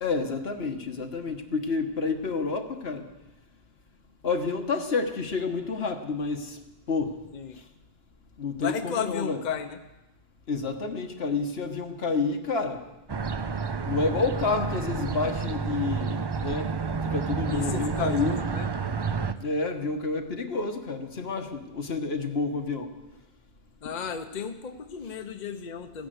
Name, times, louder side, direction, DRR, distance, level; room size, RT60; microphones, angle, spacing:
voice 1, 0.0-3.1 4.2-6.6 6.9-7.2 8.4-9.4 10.5-12.8 13.8-16.7 17.1-18.4 19.4-22.9, left 4 dB, 75° left, 5 dB, 1.6 m, -29 dB
voice 2, 8.6-9.8 17.5-18.7 23.8-26.1, left 7 dB, 50° left, 8 dB, 0.9 m, -33 dB
sound 1, 13.1-19.3, right 5 dB, 35° right, 0.4 m, -30 dB
16.0 x 10.5 x 8.0 m, 1.0 s
omnidirectional pair, 1.1 m